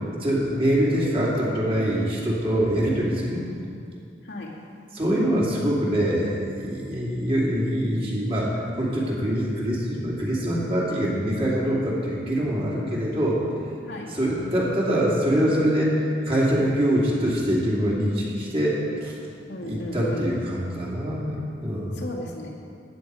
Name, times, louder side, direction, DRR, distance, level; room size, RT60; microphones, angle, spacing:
voice 1, 0.2-3.5 4.9-13.4 14.1-19.2 19.6-22.0, equal, 35° right, -5 dB, 2.8 m, -24 dB
voice 2, 1.9-2.7 3.4-3.5 4.3-4.5 13.9-14.1 19.5-20.2 22.0-22.5, left 1 dB, 85° left, -3 dB, 2.2 m, -35 dB
14.5 x 9.7 x 4.7 m, 2.4 s
head